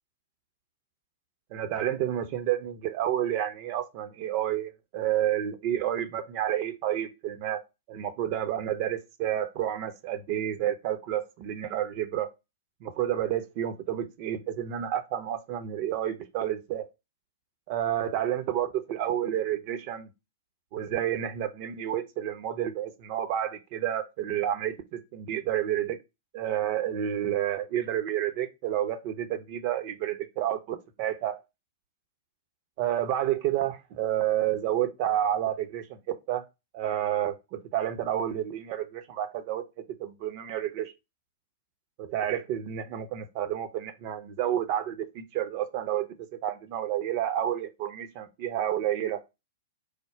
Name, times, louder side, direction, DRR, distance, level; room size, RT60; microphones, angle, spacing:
voice 1, 1.5-7.6 7.9-12.3 12.8-16.9 17.7-20.1 20.7-26.0 26.3-31.4 32.8-36.5 36.7-39.6 40.0-40.9 42.0-49.2, right 11 dB, 45° right, 0.8 m, -30 dB
5.0 x 2.3 x 4.5 m
figure-of-eight pair, 105°, 0 cm